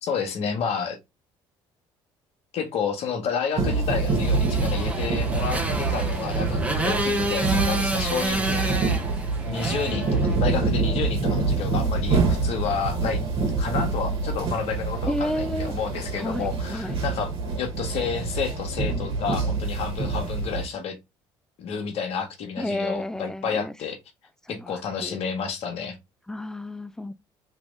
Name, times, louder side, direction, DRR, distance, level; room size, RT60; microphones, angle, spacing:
voice 1, 0.0-1.0 2.5-8.9 9.5-13.2 13.6-17.3 17.6-21.0 21.6-24.0 24.5-26.0, left 6 dB, 65° left, 1.2 m, -30 dB
sound 1, 3.6-20.6, right 4 dB, 55° right, 1.8 m, -26 dB
Motorcycle, 4.0-10.7, right 2 dB, 10° right, 1.3 m, -29 dB
voice 2, 15.1-15.7 16.2-17.0 22.6-23.7 24.5-25.2 26.3-27.1, left 1 dB, 5° left, 0.4 m, -31 dB
3.3 x 3.0 x 3.2 m
hypercardioid pair, 65°, 11 cm